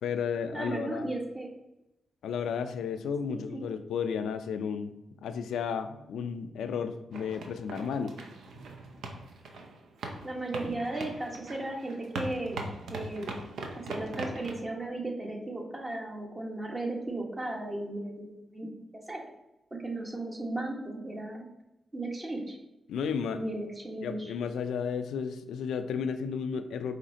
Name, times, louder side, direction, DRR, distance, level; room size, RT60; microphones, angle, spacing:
voice 1, 0.0-1.1 2.2-8.1 22.9-23.4 24.0-27.0, left 6 dB, 90° left, 8 dB, 0.3 m, -33 dB
voice 2, 0.5-1.5 3.3-3.7 10.2-13.3 13.9-19.2 19.8-21.5 21.9-22.6 23.3-24.3, right 2 dB, 25° right, 0 dB, 1.2 m, -36 dB
sound 1, 7.1-14.6, right 2 dB, 85° right, 0.6 m, -40 dB
5.0 x 3.2 x 2.8 m, 0.93 s
cardioid pair, 60°, 0 cm